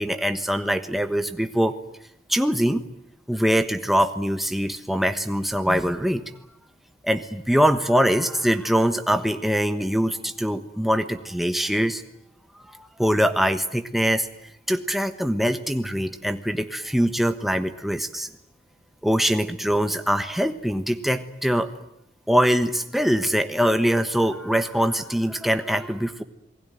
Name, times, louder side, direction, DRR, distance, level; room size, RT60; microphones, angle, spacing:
voice 1, 0.0-1.8 2.3-2.8 3.3-6.2 7.0-12.0 12.6-14.3 14.7-18.3 19.0-21.7 22.3-26.2, equal, ahead, 8 dB, 1.2 m, -23 dB
27.5 x 20.0 x 9.3 m, 0.78 s
head